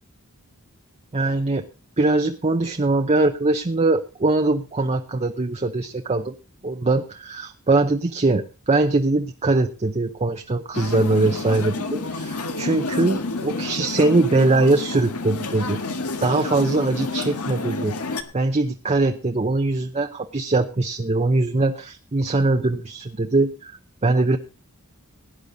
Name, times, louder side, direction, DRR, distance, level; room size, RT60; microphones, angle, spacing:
voice 1, 1.1-1.7 2.0-6.3 6.6-15.8 16.2-17.9 18.3-23.7 24.0-24.4, right 2 dB, 30° right, 6 dB, 0.7 m, -22 dB
sound 1, 10.7-18.2, left 3 dB, 85° left, 1.6 m, -29 dB
17.5 x 10.0 x 3.9 m, 0.32 s
head